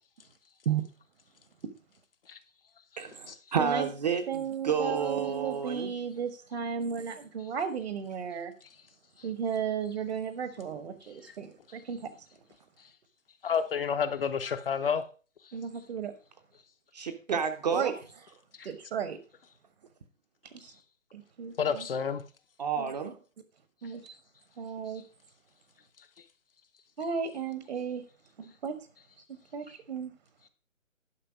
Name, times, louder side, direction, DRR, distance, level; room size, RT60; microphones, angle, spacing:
voice 1, 3.0-5.9 16.9-17.9 22.6-23.2, right 6 dB, 35° right, 0.7 m, -30 dB
voice 2, 4.3-8.5 9.2-12.3 15.5-16.1 17.3-17.4 17.7-18.0 18.6-19.2 20.5-20.7 21.1-21.9 22.8-22.9 23.8-24.1 24.6-25.0 27.0-28.0 28.4-28.8 29.5-30.1, right 7 dB, 50° right, 1.1 m, -34 dB
voice 3, 13.4-15.0 18.6-18.7 21.6-22.2, left 7 dB, 45° left, 0.7 m, -29 dB
11.0 x 5.5 x 5.3 m
hypercardioid pair, 150°, 39 cm